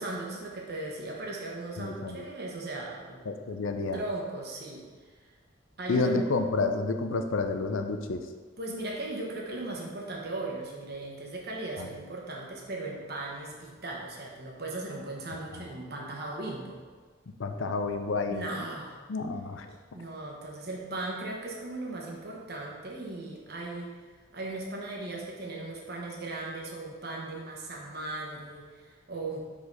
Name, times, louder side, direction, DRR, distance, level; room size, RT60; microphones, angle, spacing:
voice 1, 0.0-3.2 3.9-4.8 5.8-6.1 8.6-16.8 18.3-19.0 19.9-23.9 24.3-29.5, right 2 dB, 55° right, -1 dB, 1.2 m, -37 dB
voice 2, 1.8-2.2 3.3-4.0 5.9-8.2 11.8-11.9 15.5-15.7 17.4-18.4 19.1-19.8, left 3 dB, 85° left, 6 dB, 0.6 m, -30 dB
5.3 x 4.0 x 5.3 m, 1.4 s
head